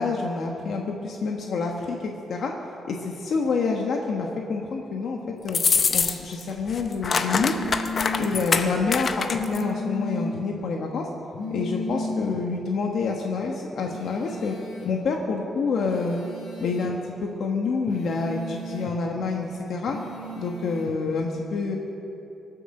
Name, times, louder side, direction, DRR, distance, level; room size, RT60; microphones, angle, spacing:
voice 1, 0.0-2.5 2.9-5.6 5.9-7.5 8.2-11.1 11.5-14.5 14.8-16.2 16.6-20.0 20.3-21.7, left 4 dB, 55° left, 1 dB, 1.2 m, -27 dB
sound 1, 5.5-6.4 6.7-9.6, left 5 dB, 35° left, 0.7 m, -24 dB
sound 2, 7.3-8.4 9.3-10.4 11.3-12.4 13.9-14.9 15.9-16.9 17.9-18.9 19.9-20.9, left 2 dB, 90° left, 3.2 m, -34 dB
24.0 x 8.0 x 6.6 m, 2.9 s
wide cardioid pair, 180°, 0 cm